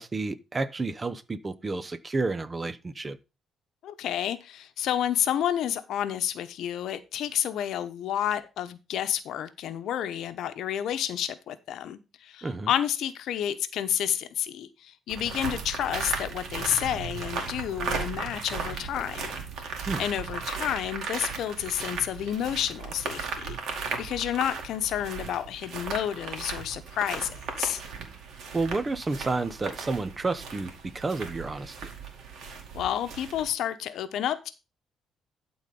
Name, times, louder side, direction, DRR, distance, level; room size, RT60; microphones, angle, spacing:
voice 1, 0.0-3.2 12.4-12.7 19.9-20.0 28.5-31.9, right 3 dB, 25° right, 0.8 m, -30 dB
voice 2, 3.8-19.3 20.0-23.6 24.0-27.8 32.7-34.5, left 10 dB, 75° left, 0.9 m, -30 dB
sound 1, 15.1-33.5, right 5 dB, 70° right, 2.2 m, -36 dB
12.0 x 4.0 x 5.3 m
cardioid pair, 90°, 0 cm